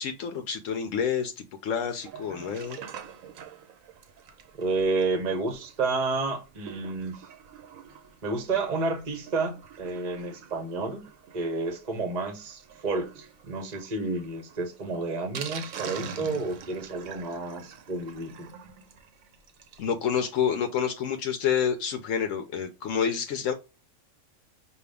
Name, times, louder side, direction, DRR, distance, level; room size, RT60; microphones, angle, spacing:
voice 1, 0.0-2.8 19.8-23.5, left 7 dB, 75° left, 0.9 m, -28 dB
Sink (filling or washing), 1.9-19.9 20.3-20.4 20.5-20.6 21.0-21.1, right 6 dB, 85° right, 1.1 m, -45 dB
voice 2, 4.6-7.2 8.2-11.0 11.3-18.5, right 3 dB, 40° right, 0.8 m, -30 dB
5.3 x 2.3 x 3.3 m
omnidirectional pair, 1.4 m